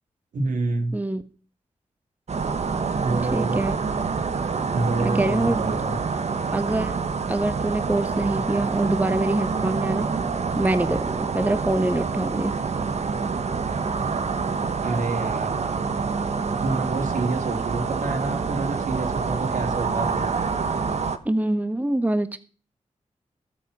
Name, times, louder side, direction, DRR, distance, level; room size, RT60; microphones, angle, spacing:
voice 1, 0.3-1.0 3.0-3.6 4.1-4.2 4.7-6.0 14.8-15.6 16.6-20.3, right 3 dB, 85° right, 4 dB, 2.9 m, -28 dB
sound 1, 2.3-21.2, right 5 dB, 60° right, 1.4 m, -26 dB
voice 2, 3.3-3.8 5.0-5.6 6.5-6.9 7.3-10.1 10.6-12.5 21.2-22.4, right 1 dB, 10° right, 11 dB, 1.2 m, -25 dB
18.0 x 7.5 x 5.6 m, 0.38 s
cardioid pair, 75°, 13 cm